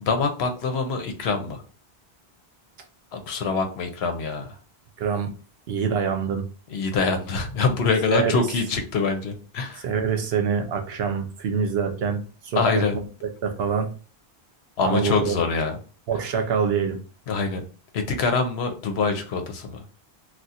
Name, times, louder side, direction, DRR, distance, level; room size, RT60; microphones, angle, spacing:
voice 1, 0.0-1.6 3.1-4.6 6.7-9.8 12.6-13.0 14.8-15.8 17.3-17.6 17.9-19.8, left 4 dB, 80° left, 0.9 m, -25 dB
voice 2, 5.0-5.3 5.7-6.5 8.1-8.4 9.8-12.8 13.2-13.9 14.8-15.4 16.1-17.0, right 6 dB, 70° right, 0.8 m, -25 dB
2.4 x 2.3 x 4.0 m
omnidirectional pair, 1.1 m